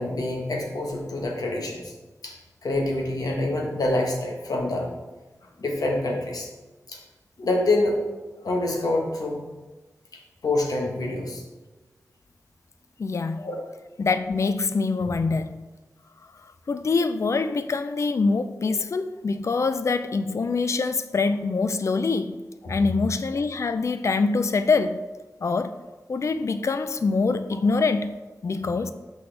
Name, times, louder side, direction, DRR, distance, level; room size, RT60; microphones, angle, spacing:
voice 1, 0.0-1.9 2.2-2.3 2.6-4.9 5.6-6.5 6.9-7.0 7.4-8.0 8.4-9.4 10.4-11.4 13.4-13.5 22.6-22.7 28.6-28.7, left 2 dB, 80° left, 1 dB, 1.1 m, -26 dB
voice 2, 13.0-13.4 14.0-15.6 16.7-22.4 22.7-25.0 25.4-25.7 26.1-28.1 28.4-28.9, left 4 dB, 50° left, 10 dB, 0.3 m, -24 dB
6.0 x 5.4 x 3.3 m, 1.2 s
wide cardioid pair, 90°, 6 cm